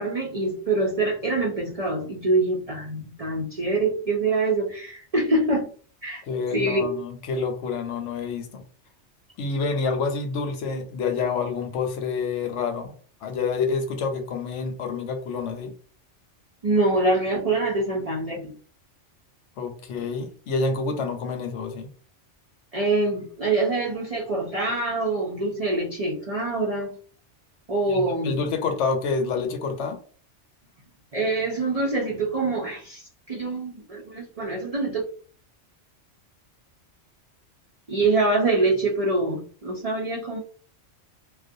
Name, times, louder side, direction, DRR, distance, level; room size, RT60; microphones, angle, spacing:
voice 1, 0.0-5.7 6.0-6.2 6.5-6.9 16.6-18.5 22.7-26.9 27.7-28.4 31.1-35.0 37.9-40.4, right 2 dB, 50° right, -3 dB, 0.4 m, -25 dB
voice 2, 6.2-8.6 9.4-12.9 13.2-15.7 19.6-21.9 27.9-30.0, left 4 dB, 80° left, 4 dB, 0.9 m, -28 dB
2.4 x 2.1 x 2.5 m, 0.43 s
omnidirectional pair, 1.2 m